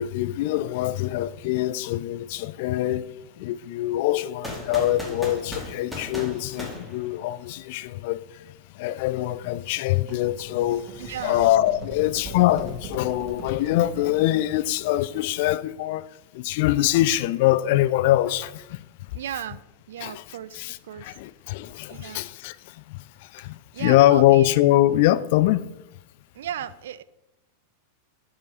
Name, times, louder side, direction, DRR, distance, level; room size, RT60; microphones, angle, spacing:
voice 1, 0.0-3.1 3.4-16.1 16.3-18.9 20.0-20.2 20.6-25.6, left 15 dB, 50° left, 0.4 m, -23 dB
sound 1, 4.4-7.6, left 1 dB, ahead, 2.1 m, -37 dB
sound 2, 9.9-14.8, right 3 dB, 30° right, 1.1 m, -41 dB
voice 2, 11.0-11.6 19.1-19.6 19.9-20.6 20.8-21.2 21.9-22.3 23.7-24.5 26.3-27.0, right 10 dB, 60° right, 0.4 m, -35 dB
9.2 x 5.1 x 5.4 m
figure-of-eight pair, 90°, 0 cm